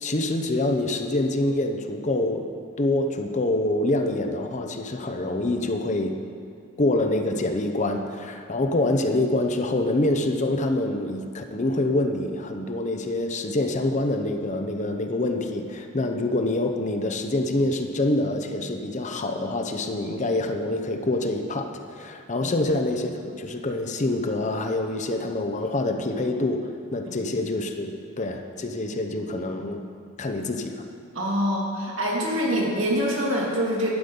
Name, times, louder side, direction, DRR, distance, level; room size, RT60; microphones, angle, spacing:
voice 1, 0.0-2.5 2.8-6.2 6.8-29.8 30.2-30.8, left 2 dB, 35° left, 5 dB, 0.7 m, -26 dB
voice 2, 31.1-33.9, equal, 70° right, -4 dB, 2.6 m, -25 dB
11.5 x 9.7 x 5.3 m, 2.4 s
head